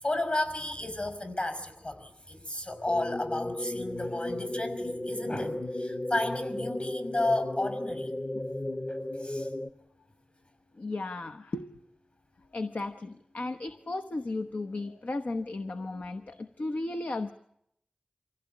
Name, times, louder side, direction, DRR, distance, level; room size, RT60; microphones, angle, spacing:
voice 1, 0.0-8.1 8.9-9.5, left 2 dB, 55° left, 9 dB, 5.8 m, -33 dB
sound 1, 2.9-9.7, left 1 dB, 40° left, 1.0 m, -34 dB
voice 2, 10.8-11.7 12.5-17.3, left 2 dB, 85° left, 6 dB, 1.0 m, -35 dB
25.5 x 16.0 x 10.0 m, 0.76 s
wide cardioid pair, 45°, 3 cm